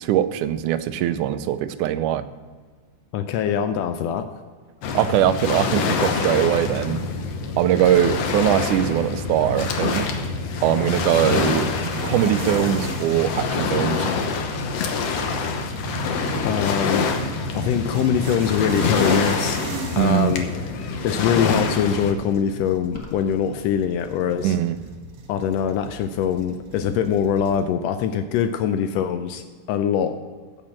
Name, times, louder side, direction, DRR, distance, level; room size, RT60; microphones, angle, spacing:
voice 1, 0.0-2.3 4.9-7.0 7.6-10.1 10.6-11.7 12.0-14.1 20.0-20.4 24.4-24.8, right 11 dB, 85° right, 12 dB, 2.1 m, -21 dB
voice 2, 3.1-4.3 16.4-17.0 17.5-19.6 20.0-20.5 20.7-24.6 25.3-30.1, left 8 dB, 85° left, 8 dB, 1.4 m, -23 dB
Waves surf, 4.8-22.1, left 4 dB, 65° left, 1.8 m, -26 dB
sound 1, 10.3-27.6, right 4 dB, 60° right, 1.6 m, -38 dB
sound 2, 22.9-23.4, equal, 35° left, 0.8 m, -43 dB
15.0 x 5.4 x 7.3 m, 1.5 s
omnidirectional pair, 3.6 m